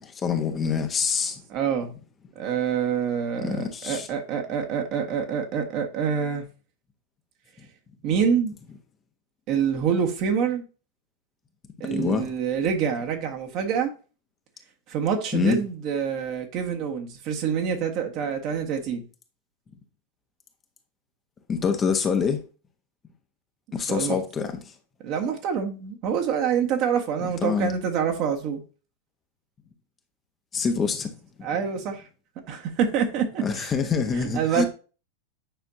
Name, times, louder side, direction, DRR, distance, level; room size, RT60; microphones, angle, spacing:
voice 1, 0.0-1.4 3.4-4.1 11.8-12.2 15.3-15.6 21.5-22.4 23.7-24.7 27.2-27.7 30.5-31.1 31.4-31.5 33.4-34.7, left 5 dB, 20° left, 1.1 m, -26 dB
voice 2, 1.5-1.9 2.3-6.4 8.0-8.5 9.5-10.6 11.8-13.9 14.9-19.0 23.9-24.2 25.0-28.6 31.4-32.0 32.5-33.7 34.3-34.7, right 7 dB, 40° right, 1.5 m, -26 dB
9.2 x 5.7 x 2.8 m
figure-of-eight pair, 90°, 0 cm